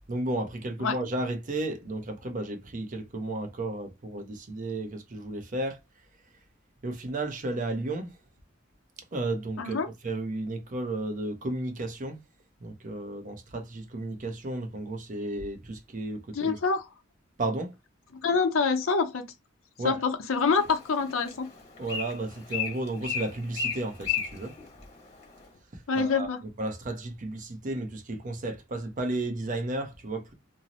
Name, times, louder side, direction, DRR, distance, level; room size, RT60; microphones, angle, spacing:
voice 1, 0.1-5.8 6.8-8.2 9.1-12.2 12.6-16.6 17.4-17.7 19.8-20.0 21.8-24.6 25.7-26.3 26.6-30.3, right 2 dB, 40° right, 0.6 m, -33 dB
voice 2, 9.6-9.9 16.3-16.8 18.2-19.3 19.8-21.5 25.9-26.4, left 5 dB, 85° left, 0.6 m, -26 dB
Bird, 20.3-25.5, left 7 dB, 35° left, 1.2 m, -35 dB
2.6 x 2.0 x 2.8 m
head